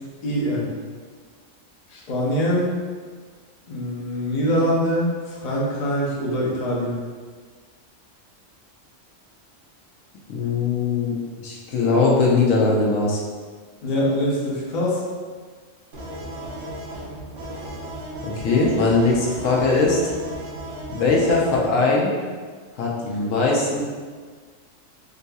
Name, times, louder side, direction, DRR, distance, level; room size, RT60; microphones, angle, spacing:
voice 1, 0.2-0.7 1.9-2.7 3.7-7.0 13.8-15.0, equal, 40° left, -5 dB, 0.6 m, -23 dB
voice 2, 10.3-11.1 11.4-13.2 18.2-20.1 20.9-22.1 22.7-23.8, left 3 dB, 85° left, -3 dB, 1.0 m, -20 dB
sound 1, 15.9-21.6, right 1 dB, 75° right, 1.1 m, -35 dB
3.8 x 2.7 x 2.3 m, 1.5 s
omnidirectional pair, 1.3 m